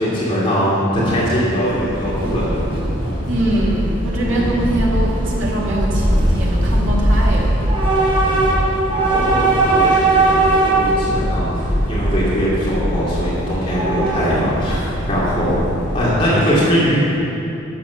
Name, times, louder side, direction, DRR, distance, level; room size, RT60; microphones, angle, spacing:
voice 1, 0.0-2.6 8.3-8.5 8.9-14.8 15.0-17.0, equal, 25° left, -8 dB, 2.8 m, -21 dB
Train / Subway metro underground, 1.5-16.3, right 1 dB, 25° right, 3.3 m, -19 dB
voice 2, 3.3-7.6, right 1 dB, 70° right, -4 dB, 2.6 m, -23 dB
12.0 x 7.4 x 7.2 m, 2.8 s
head